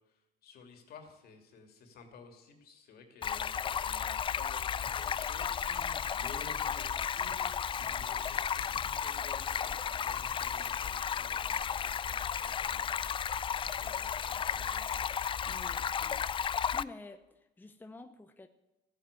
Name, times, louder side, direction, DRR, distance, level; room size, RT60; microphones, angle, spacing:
voice 1, 0.0-5.9 6.1-7.5 7.8-15.2, left 5 dB, 65° left, 2.9 m, -54 dB
Stream, 3.2-16.8, left 8 dB, 30° left, 0.4 m, -34 dB
sound 1, 4.9-10.8, right 1 dB, 20° right, 2.8 m, -56 dB
voice 2, 5.7-6.1 15.4-16.3 16.7-18.5, left 2 dB, 10° left, 0.8 m, -50 dB
14.0 x 9.0 x 8.3 m
cardioid pair, 110°, 17 cm